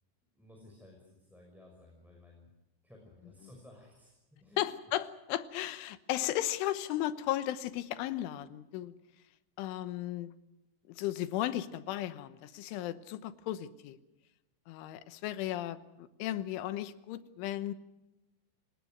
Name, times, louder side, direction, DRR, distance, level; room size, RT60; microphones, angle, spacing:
voice 1, 0.3-2.5 2.8-4.6, left 1 dB, ahead, -1 dB, 5.3 m, -56 dB
voice 2, 4.6-8.9 9.6-10.3 10.9-14.0 14.7-17.7, left 13 dB, 80° left, 13 dB, 3.5 m, -35 dB
29.0 x 19.5 x 6.4 m, 0.98 s
omnidirectional pair, 5.7 m